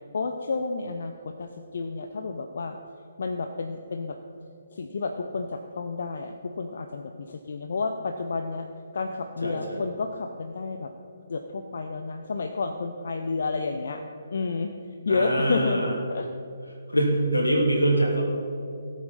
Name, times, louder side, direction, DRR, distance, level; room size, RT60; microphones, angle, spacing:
voice 1, 0.1-2.8 3.2-4.2 4.7-8.7 8.9-10.9 11.3-14.0 14.3-14.7 15.1-15.8 16.1-16.3, left 4 dB, 60° left, 6 dB, 0.7 m, -30 dB
voice 2, 9.4-9.8 15.1-15.9 16.9-18.2, right 1 dB, 85° left, 0 dB, 3.0 m, -24 dB
18.0 x 8.3 x 4.3 m, 2.6 s
figure-of-eight pair, 135°, 0 cm